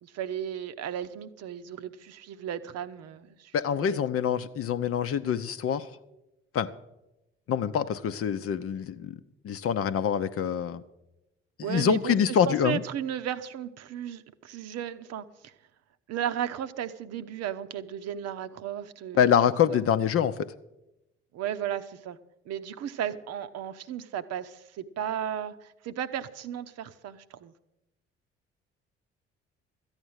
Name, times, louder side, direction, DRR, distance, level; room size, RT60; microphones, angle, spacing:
voice 1, 0.0-3.5 3.8-4.0 11.6-15.5 16.1-19.3 19.6-19.8 21.3-22.2 22.5-25.6 25.8-27.5, right 9 dB, 55° right, 10 dB, 0.8 m, -35 dB
voice 2, 3.5-5.9 6.5-6.7 7.5-9.2 9.4-10.8 11.7-12.8 19.2-20.3, left 8 dB, 45° left, 12 dB, 0.7 m, -25 dB
13.5 x 8.9 x 6.4 m, 0.93 s
hypercardioid pair, 50°, 31 cm